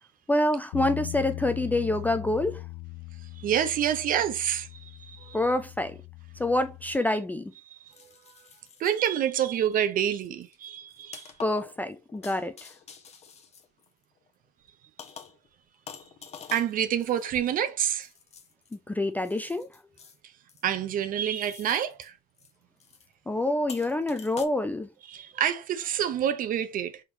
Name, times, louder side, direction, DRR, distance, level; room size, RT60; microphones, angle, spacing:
voice 1, 0.3-2.6 5.3-6.0 6.4-7.5 11.4-12.5 18.7-19.7 23.3-24.9, left 1 dB, 10° left, 0.4 m, -27 dB
Bass guitar, 0.7-7.0, left 23 dB, 65° left, 0.5 m, -40 dB
voice 2, 3.4-5.4 8.8-11.3 16.5-18.1 20.6-22.1 25.1-27.0, right 10 dB, 45° right, 0.7 m, -27 dB
sound 1, 6.4-6.5 7.9-9.2 9.5-9.8 10.1-14.3 15.0-15.5 15.9-18.8 19.2-20.2 20.5-20.9 21.3-22.1 22.4-22.5 22.8-23.1 23.7-24.4, left 7 dB, 30° left, 0.9 m, -47 dB
4.6 x 3.7 x 2.8 m
hypercardioid pair, 75°, 20 cm